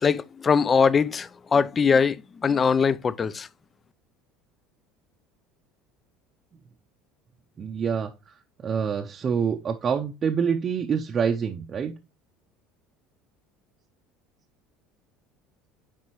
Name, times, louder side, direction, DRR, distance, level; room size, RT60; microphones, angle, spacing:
voice 1, 0.0-3.5, left 6 dB, 30° left, 0.4 m, -22 dB
voice 2, 7.6-8.1 8.6-11.9, right 6 dB, 35° right, 0.6 m, -26 dB
9.7 x 3.4 x 3.1 m
supercardioid pair, 110°, 0 cm